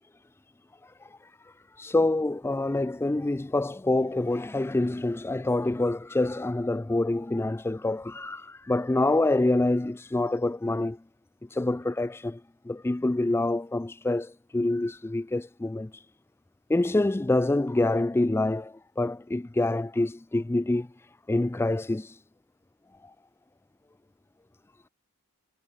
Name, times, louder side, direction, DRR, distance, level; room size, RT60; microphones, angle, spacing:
voice 1, 1.8-11.0 11.5-12.4 12.7-15.9 16.7-20.9 21.3-22.1, left 2 dB, 10° left, 0.3 m, -26 dB
head